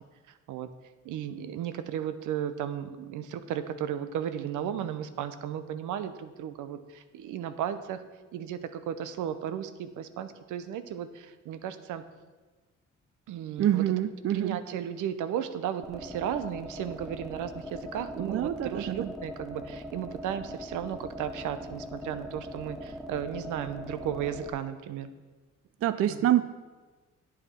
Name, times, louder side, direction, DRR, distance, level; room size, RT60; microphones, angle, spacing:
voice 1, 1.0-8.0 8.3-12.0 13.3-13.8 14.3-25.1 26.1-26.3, right 9 dB, 85° right, 11 dB, 0.7 m, -35 dB
voice 2, 13.6-14.6 18.2-19.1 25.8-26.4, right 12 dB, 50° right, 14 dB, 0.5 m, -26 dB
sound 1, 15.8-24.5, equal, ahead, 0.7 m, -41 dB
8.4 x 8.1 x 5.6 m, 1.3 s
cardioid pair, 90°, 30 cm